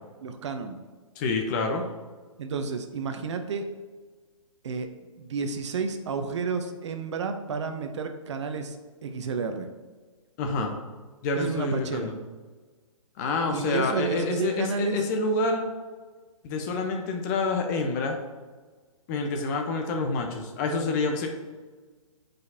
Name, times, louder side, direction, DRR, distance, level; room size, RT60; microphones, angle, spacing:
voice 1, 0.2-0.8 2.4-3.6 4.6-4.9 5.2-8.8 9.0-9.7 11.3-12.1 13.5-15.0, right 5 dB, 55° right, 7 dB, 0.8 m, -31 dB
voice 2, 1.2-1.8 10.4-10.7 11.2-12.1 13.2-15.6 16.4-18.2 19.1-21.3, left 3 dB, 30° left, 3 dB, 0.9 m, -27 dB
9.2 x 5.2 x 2.8 m, 1.4 s
hypercardioid pair, 135°, 18 cm